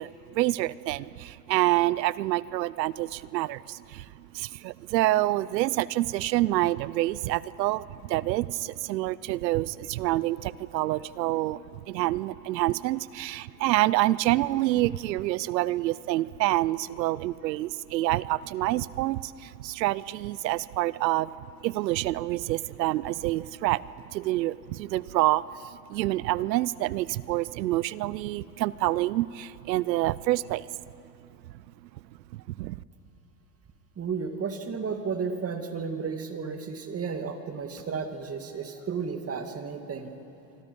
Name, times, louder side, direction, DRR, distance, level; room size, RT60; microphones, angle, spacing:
voice 1, 0.0-21.3 21.6-23.8 24.1-30.7 32.3-32.8, right 16 dB, 85° right, 20 dB, 0.7 m, -27 dB
voice 2, 34.0-40.1, right 5 dB, 30° right, 6 dB, 2.3 m, -33 dB
27.5 x 25.0 x 5.4 m, 3.0 s
hypercardioid pair, 95°, 49 cm